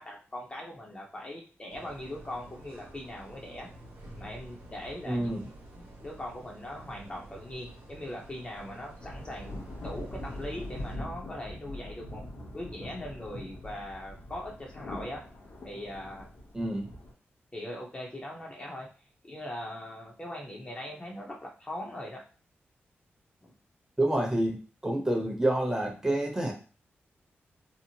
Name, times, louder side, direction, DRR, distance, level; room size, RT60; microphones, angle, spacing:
voice 1, 0.0-3.7 4.2-5.3 5.8-12.2 12.5-15.2 15.6-16.3 17.5-18.9 19.2-22.2 23.4-23.5, left 1 dB, 25° left, -1 dB, 0.6 m, -40 dB
sound 1, 1.7-11.0, right 1 dB, 80° right, 0.9 m, -49 dB
voice 2, 5.1-5.5 16.5-16.9 24.0-24.6 24.8-26.5, right 1 dB, 15° right, 0 dB, 0.8 m, -28 dB
sound 2, 9.0-17.1, left 1 dB, 65° left, 0.8 m, -42 dB
2.8 x 2.0 x 2.7 m, 0.35 s
cardioid pair, 90°, 4 cm